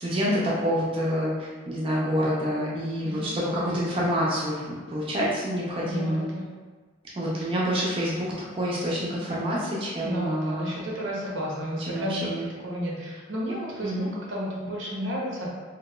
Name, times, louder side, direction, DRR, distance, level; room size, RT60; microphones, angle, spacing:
voice 1, 0.0-6.2 7.1-10.7 11.9-12.5 13.8-14.1, equal, 30° right, -6 dB, 0.4 m, -27 dB
voice 2, 3.0-3.8 5.9-6.5 10.0-12.4 12.6-15.5, equal, 90° right, -5 dB, 0.7 m, -32 dB
2.9 x 2.1 x 2.3 m, 1.4 s
head